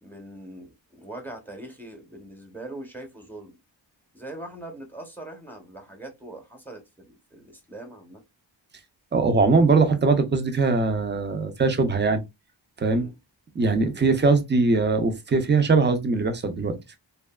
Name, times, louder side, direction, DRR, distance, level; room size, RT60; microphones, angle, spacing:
voice 1, 0.0-3.5 4.1-8.2 12.9-13.2, right 1 dB, 5° left, 0.8 m, -41 dB
voice 2, 9.1-12.2 12.8-13.1 13.6-17.0, right 3 dB, 25° right, 0.5 m, -21 dB
2.7 x 2.3 x 2.2 m
wide cardioid pair, 80°, 46 cm